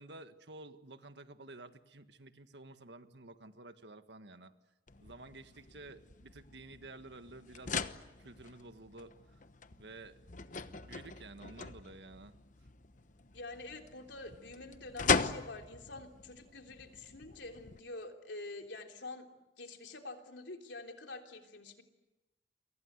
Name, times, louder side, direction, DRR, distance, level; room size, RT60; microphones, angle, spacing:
voice 1, 0.0-4.5 5.0-7.8 8.2-9.4 9.7-12.4, right 2 dB, 70° right, 9 dB, 1.7 m, -52 dB
sound 1, 4.9-17.8, left 5 dB, 45° left, 1.1 m, -40 dB
voice 2, 13.3-19.3 19.6-21.8, left 2 dB, 80° left, 4 dB, 3.4 m, -47 dB
29.5 x 24.5 x 8.2 m, 1.0 s
head